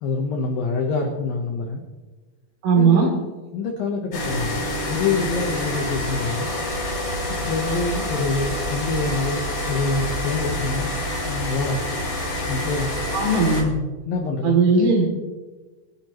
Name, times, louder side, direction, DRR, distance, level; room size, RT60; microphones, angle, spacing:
voice 1, 0.0-1.8 2.8-6.5 7.4-11.0 11.2-11.8 12.5-12.9 14.1-14.6, left 4 dB, 75° left, 2 dB, 2.1 m, -26 dB
voice 2, 2.6-3.1 13.1-13.7 14.4-15.1, right 4 dB, 70° right, 0 dB, 5.4 m, -17 dB
sound 1, 4.1-13.6, left 1 dB, 30° left, 3.9 m, -27 dB
26.0 x 10.5 x 3.1 m, 1.3 s
omnidirectional pair, 5.8 m